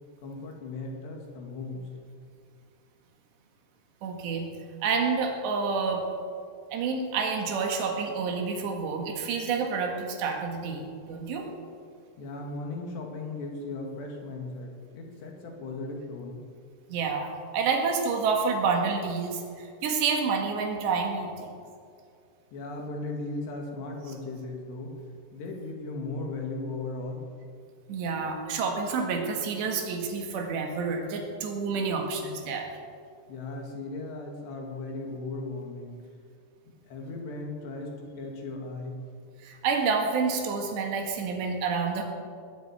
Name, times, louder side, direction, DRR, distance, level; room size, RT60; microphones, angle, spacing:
voice 1, 0.2-1.9 12.2-16.4 22.5-25.0 25.3-27.2 33.3-36.0 36.9-39.0, left 2 dB, 75° left, 0 dB, 4.5 m, -37 dB
voice 2, 4.0-4.5 4.8-6.0 6.7-11.5 16.9-21.5 27.9-32.7 39.4-42.0, right 5 dB, 85° right, 2 dB, 4.1 m, -29 dB
19.5 x 8.0 x 9.0 m, 2.3 s
omnidirectional pair, 4.9 m